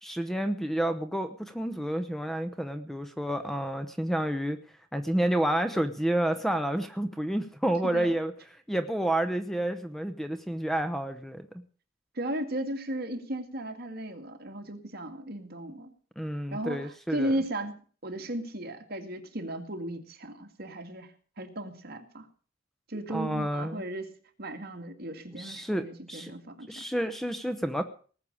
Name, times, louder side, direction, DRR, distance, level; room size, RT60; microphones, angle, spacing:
voice 1, 0.0-4.6 4.9-8.3 8.7-11.5 16.2-17.3 23.1-23.8 25.3-26.3 26.7-27.8, right 1 dB, ahead, 9 dB, 0.8 m, -30 dB
voice 2, 12.2-15.9 16.5-21.1 21.4-22.3 22.9-24.1 24.4-26.8, right 1 dB, 50° right, 5 dB, 2.2 m, -35 dB
19.0 x 6.7 x 8.6 m, 0.42 s
head